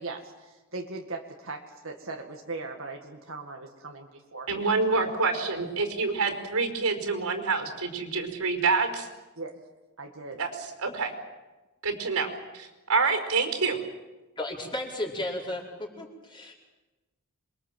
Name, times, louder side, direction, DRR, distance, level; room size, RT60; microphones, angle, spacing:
voice 1, 0.0-4.7 9.4-9.6 10.0-10.4, right 3 dB, 65° right, 2 dB, 2.1 m, -39 dB
voice 2, 4.5-9.1 10.4-11.1 11.8-12.3 12.5-13.8, right 4 dB, 85° right, 5 dB, 5.1 m, -27 dB
voice 3, 14.4-16.5, left 1 dB, 20° left, -2 dB, 4.8 m, -34 dB
27.5 x 23.0 x 7.7 m, 1.1 s
head